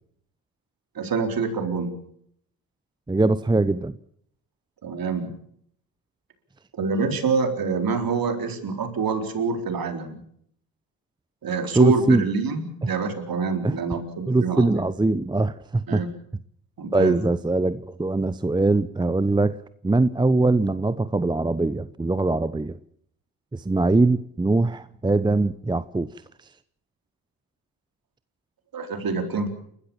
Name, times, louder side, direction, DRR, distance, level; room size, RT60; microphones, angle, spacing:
voice 1, 0.9-2.0 4.8-5.3 6.7-10.2 11.4-14.7 15.9-16.1 16.8-17.2 28.7-29.5, right 5 dB, 45° right, 6 dB, 4.2 m, -26 dB
voice 2, 3.1-3.9 11.7-12.2 13.6-13.8 14.3-16.0 16.9-19.6 19.8-22.8 23.5-26.1, right 2 dB, 10° right, 15 dB, 0.8 m, -22 dB
29.0 x 13.5 x 7.2 m, 0.67 s
hypercardioid pair, 55°, 47 cm